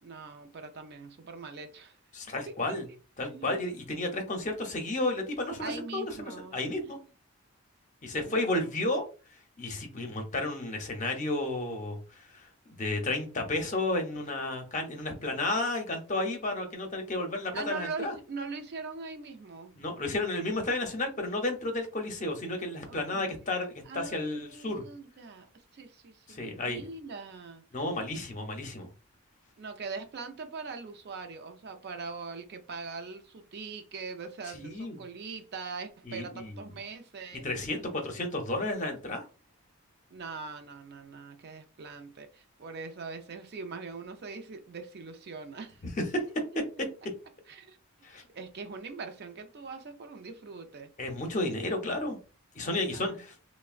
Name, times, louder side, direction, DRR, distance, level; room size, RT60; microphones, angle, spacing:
voice 1, 0.0-2.0 2.5-2.6 2.9-3.6 5.6-6.9 8.2-8.6 17.5-19.7 22.9-23.4 23.9-25.5 25.7-27.6 29.6-37.5 40.1-45.8 47.5-47.8 48.3-50.9 52.6-53.1, right 4 dB, 50° right, 0.4 m, -42 dB
voice 2, 2.1-2.9 3.2-7.0 8.0-9.0 9.6-12.5 12.8-18.1 19.8-24.8 26.3-26.8 27.7-28.9 34.5-35.0 36.1-36.6 37.4-39.2 45.8-45.9 48.0-48.2 51.0-52.2 52.5-53.3, left 2 dB, 35° left, 0.6 m, -32 dB
3.5 x 2.0 x 2.4 m
head